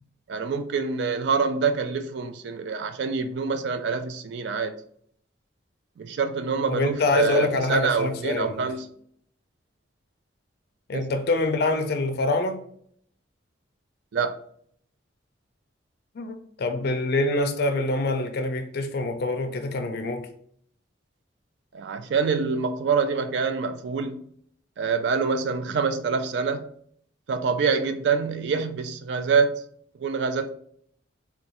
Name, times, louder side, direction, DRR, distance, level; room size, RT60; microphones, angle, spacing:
voice 1, 0.3-4.7 6.0-8.9 10.9-11.2 14.1-14.4 21.7-24.2 24.8-26.7 27.3-29.6 30.0-30.5, right 5 dB, 65° right, 0.3 m, -26 dB
voice 2, 6.7-8.6 10.9-12.6 16.2-20.3, left 2 dB, 55° left, 0.4 m, -25 dB
3.6 x 2.2 x 2.8 m
head